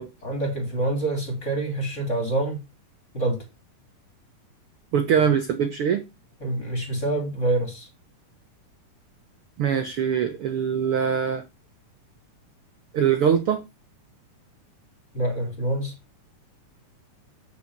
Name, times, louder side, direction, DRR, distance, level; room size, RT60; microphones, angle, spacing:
voice 1, 0.2-2.6 3.1-3.4 6.4-7.9 15.1-15.9, right 2 dB, 20° left, 3.1 m, -26 dB
voice 2, 4.9-6.0 9.6-11.4 12.9-13.6, right 8 dB, 70° right, 1.3 m, -22 dB
8.6 x 6.8 x 4.7 m
omnidirectional pair, 3.9 m